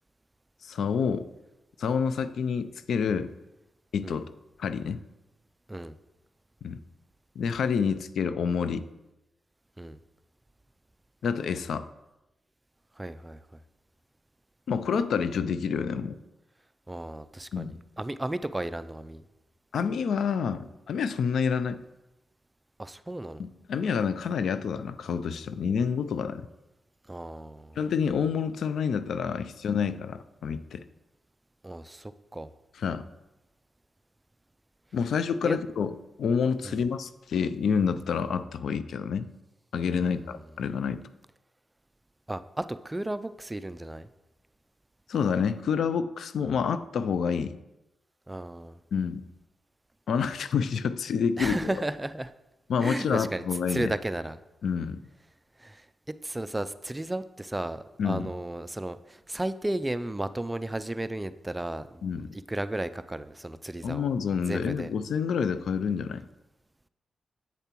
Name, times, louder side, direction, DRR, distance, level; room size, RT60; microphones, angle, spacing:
voice 1, 0.6-1.3 1.8-3.3 3.9-4.3 4.6-5.0 6.6-6.8 7.4-8.9 11.2-11.9 14.7-16.2 17.5-17.8 19.7-21.8 23.4-26.5 27.8-30.8 32.8-33.0 34.9-39.3 39.7-41.0 45.1-47.6 48.9-49.3 50.1-51.6 52.7-53.9 54.6-55.0 58.0-58.3 62.0-62.3 63.8-66.2, left 6 dB, 80° left, 12 dB, 0.3 m, -28 dB
voice 2, 13.0-13.4 16.9-19.3 22.8-23.5 27.1-27.8 31.6-32.5 35.4-35.6 36.6-36.8 40.0-40.4 42.3-44.1 48.3-48.8 51.4-52.3 52.8-53.4 53.7-54.4 55.6-55.9 56.2-64.1 64.5-64.9, right 1 dB, 15° right, 13 dB, 0.3 m, -34 dB
8.2 x 6.8 x 3.0 m, 0.98 s
cardioid pair, 75°, 0 cm